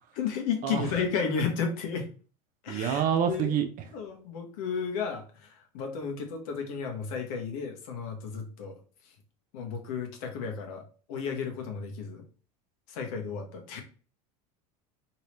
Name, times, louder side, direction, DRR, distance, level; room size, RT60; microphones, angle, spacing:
voice 1, 0.1-2.1 2.6-3.5 3.9-8.7 9.5-10.8 11.1-12.2 12.9-13.8, left 6 dB, 70° left, 1.1 m, -33 dB
voice 2, 2.7-3.7, right 8 dB, 45° right, 0.7 m, -27 dB
3.2 x 2.9 x 3.0 m
hypercardioid pair, 85°, 19 cm